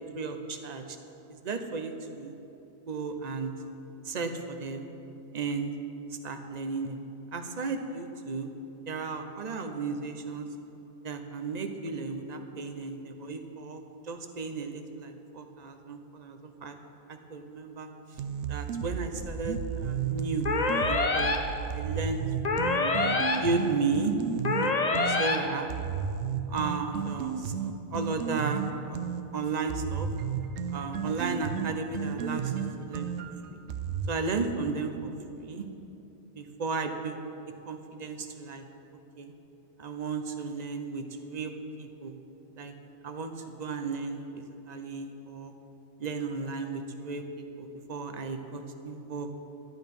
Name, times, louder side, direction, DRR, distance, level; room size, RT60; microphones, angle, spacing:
voice 1, 0.1-1.0 1.3-2.4 2.9-3.5 4.0-4.9 5.3-5.7 6.2-7.0 7.3-8.5 8.9-10.5 11.0-16.8 17.1-17.9 18.5-20.5 20.9-21.3 21.7-22.2 22.5-24.2 24.9-25.7 26.5-30.1 30.7-33.1 33.5-33.6 34.1-35.1 35.4-35.7 36.4-37.2 37.6-38.6 39.2-39.3 39.8-41.5 41.8-42.2 42.6-42.7 43.0-45.5 46.0-49.3, right 4 dB, 40° right, 6 dB, 0.9 m, -34 dB
sound 1, 18.1-25.2 25.7-29.2 29.7-34.1, right 7 dB, 75° right, 0.9 m, -33 dB
sound 2, 20.5-21.4 22.5-23.4 24.5-25.4, left 3 dB, 40° left, 0.9 m, -26 dB
11.5 x 11.5 x 5.4 m, 2.9 s
omnidirectional pair, 1.2 m